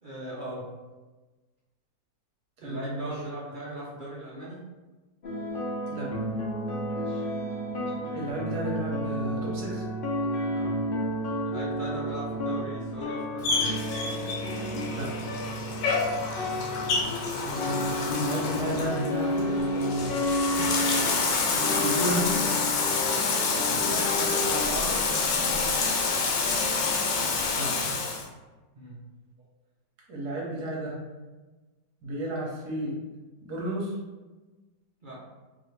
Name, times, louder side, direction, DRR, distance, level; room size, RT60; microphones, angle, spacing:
voice 1, 0.0-0.7 2.6-4.6 6.9-7.2 10.5-10.7 11.4-13.8 23.1-23.2 23.8-25.9 28.7-29.0 35.0-35.2, right 1 dB, 45° right, -6 dB, 0.6 m, -39 dB
voice 2, 2.6-3.1 5.9-6.2 7.8-7.9 8.1-9.8 14.9-15.2 18.1-20.3 21.7-22.4 27.5-27.8 30.1-31.1 32.0-33.0 33.4-34.0, right 1 dB, 65° right, -3 dB, 1.6 m, -32 dB
sound 1, 5.2-24.8, equal, 55° left, 0.5 m, -31 dB
Bathtub (filling or washing), 13.4-28.3, left 4 dB, 85° left, 1.3 m, -28 dB
4.7 x 2.9 x 3.2 m, 1.2 s
omnidirectional pair, 1.9 m